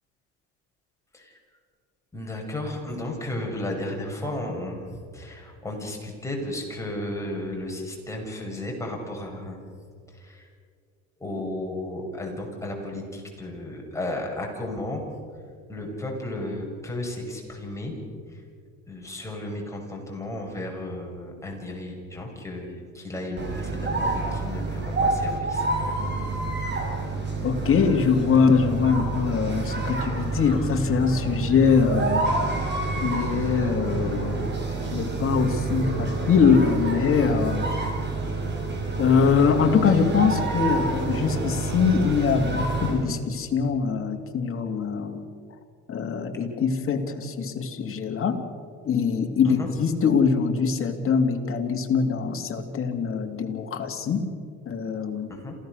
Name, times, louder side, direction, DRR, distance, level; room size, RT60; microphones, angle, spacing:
voice 1, 2.1-9.6 10.1-10.5 11.2-15.0 15.7-18.0 18.3-18.4 18.9-25.7 49.4-49.7 55.3-55.6, left 1 dB, 10° left, 0 dB, 6.4 m, -34 dB
sound 1, 23.4-43.0, right 3 dB, 35° right, 5.7 m, -28 dB
voice 2, 27.4-32.3 33.0-34.3 34.9-37.7 39.0-45.3 45.9-48.4 48.8-54.2 54.7-55.3, left 5 dB, 40° left, 4 dB, 3.0 m, -23 dB
27.5 x 16.5 x 6.7 m, 2.1 s
supercardioid pair, 95°, 32 cm